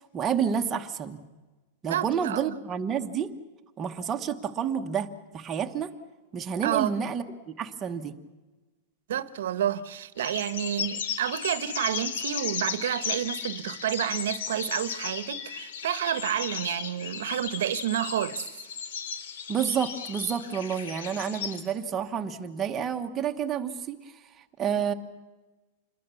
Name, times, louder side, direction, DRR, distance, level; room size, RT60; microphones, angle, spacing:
voice 1, 0.1-1.2 1.8-3.3 3.8-5.9 6.3-8.1 19.5-24.9, right 7 dB, 15° right, 1.1 m, -30 dB
voice 2, 1.9-2.5 6.6-7.0 9.1-18.4, right 11 dB, 75° right, 1.1 m, -30 dB
sound 1, 10.2-21.6, left 7 dB, 80° left, 2.8 m, -35 dB
27.0 x 21.5 x 7.0 m
supercardioid pair, 180°, 0 cm